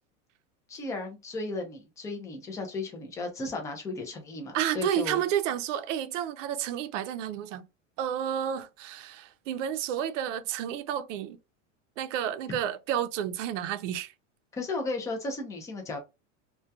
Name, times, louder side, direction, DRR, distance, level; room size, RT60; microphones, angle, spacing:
voice 1, 0.7-5.3 14.5-16.0, left 3 dB, 10° left, 0.3 m, -35 dB
voice 2, 4.5-7.6 8.0-11.4 12.0-14.1, right 10 dB, 70° right, 0.5 m, -31 dB
2.2 x 2.2 x 2.6 m
supercardioid pair, 135°, 38 cm